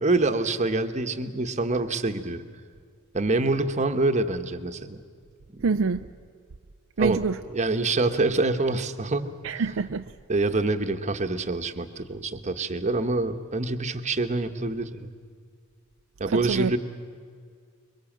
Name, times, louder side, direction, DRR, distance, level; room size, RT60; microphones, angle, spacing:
voice 1, 0.0-2.4 3.1-5.0 5.5-5.7 7.0-7.2 7.5-9.3 10.3-15.1 16.2-16.8, right 2 dB, 35° right, 8 dB, 1.2 m, -26 dB
voice 2, 5.6-6.1 7.0-7.4 9.4-10.1 16.3-16.7, right 4 dB, 65° right, 8 dB, 0.5 m, -26 dB
25.0 x 23.0 x 7.4 m, 2.1 s
head